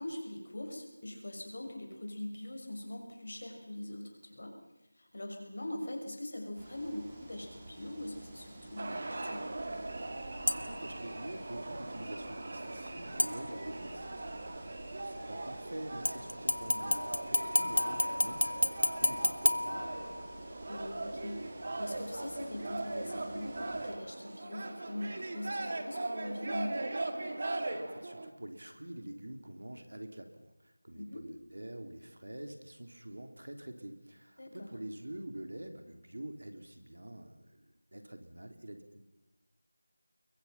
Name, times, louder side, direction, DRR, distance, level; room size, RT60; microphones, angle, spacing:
voice 1, 0.0-4.6 4.9-9.5 20.7-26.8 30.9-31.2 34.4-34.7, left 1 dB, 50° left, 3 dB, 5.9 m, -42 dB
sound 1, 6.6-23.9, right 1 dB, 15° right, 2.6 m, -51 dB
sound 2, 8.8-28.3, right 2 dB, 35° right, 2.0 m, -40 dB
sound 3, 10.5-10.9 13.2-13.9 16.0-20.4 20.9-21.0, left 1 dB, 80° left, 1.5 m, -31 dB
voice 2, 10.5-20.1 27.7-37.6 37.9-39.0, right 1 dB, 70° right, 6 dB, 3.3 m, -46 dB
27.0 x 22.5 x 5.9 m, 0.99 s
figure-of-eight pair, 175°, 0 cm